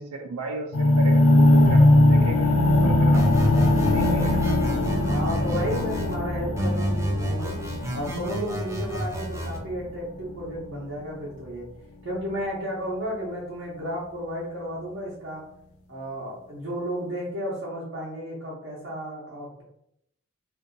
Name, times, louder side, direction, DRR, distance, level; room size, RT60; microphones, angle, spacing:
voice 1, 0.0-4.6, right 3 dB, 80° right, 2 dB, 0.4 m, -35 dB
sound 1, 0.7-10.7, left 1 dB, 70° left, 0.4 m, -21 dB
sound 2, 3.1-6.1 6.6-9.6, equal, 15° right, 0.4 m, -30 dB
voice 2, 5.0-7.6 7.9-11.7 12.0-15.4 15.9-19.6, equal, 55° right, -6 dB, 0.7 m, -33 dB
2.7 x 2.6 x 2.6 m, 0.76 s
head